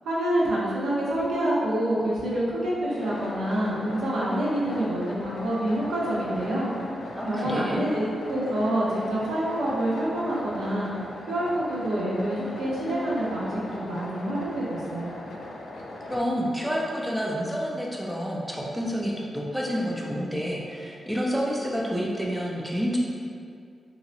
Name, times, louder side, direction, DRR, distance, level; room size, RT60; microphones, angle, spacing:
voice 1, 0.0-6.7 7.3-10.9 11.3-15.2, right 1 dB, 85° right, -6 dB, 0.6 m, -27 dB
sound 1, 2.9-16.2, left 1 dB, 80° left, 0.3 m, -39 dB
voice 2, 7.1-7.8 16.1-23.0, equal, ahead, -4 dB, 0.3 m, -29 dB
2.7 x 2.0 x 2.6 m, 2.3 s
wide cardioid pair, 110°, 0 cm